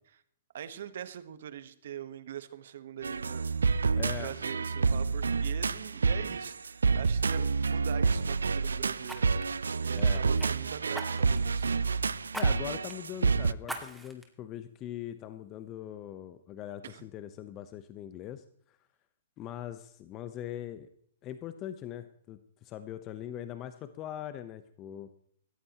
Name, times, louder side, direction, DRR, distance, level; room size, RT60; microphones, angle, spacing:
voice 1, 0.5-3.4 4.2-9.5 9.8-11.7 16.8-17.0, right 9 dB, 65° right, 13 dB, 1.3 m, -42 dB
sound 1, 3.0-13.5, right 4 dB, 85° right, 0.5 m, -28 dB
voice 2, 3.9-4.3 9.9-10.2 12.3-18.8 19.4-20.9 21.2-25.1, left 11 dB, 30° left, 10 dB, 1.0 m, -41 dB
Fire, 6.9-7.1 9.0-10.5 10.9-11.5 12.3-12.5 12.9-13.0 13.6-14.3 14.8-14.9, right 1 dB, ahead, 2.2 m, -41 dB
18.5 x 14.5 x 3.0 m, 0.65 s
hypercardioid pair, 125°, 0 cm